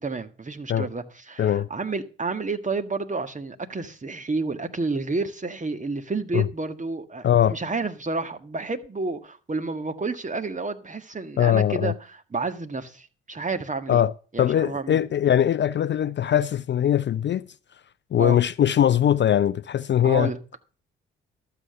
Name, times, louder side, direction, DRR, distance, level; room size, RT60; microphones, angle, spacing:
voice 1, 0.0-14.0 14.3-15.0 18.2-18.4 20.0-20.4, right 3 dB, 25° right, 1.7 m, -30 dB
voice 2, 1.4-1.7 6.3-6.5 7.2-7.6 11.4-11.9 13.9-14.1 14.4-17.5 18.1-20.3, left 10 dB, 40° left, 0.5 m, -21 dB
12.5 x 7.1 x 6.6 m
hypercardioid pair, 45°, 29 cm